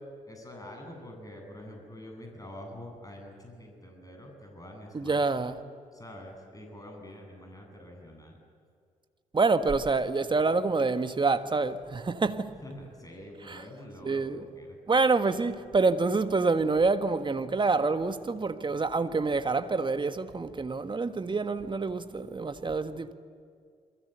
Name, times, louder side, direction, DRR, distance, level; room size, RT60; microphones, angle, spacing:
voice 1, 0.2-5.2 5.9-8.4 12.6-14.8, left 1 dB, 20° left, 7.9 m, -46 dB
voice 2, 4.9-5.6 9.3-12.5 13.5-13.6 14.0-14.4 14.9-23.1, right 3 dB, 25° right, 1.5 m, -27 dB
28.0 x 22.5 x 8.1 m
figure-of-eight pair, 45°, 18 cm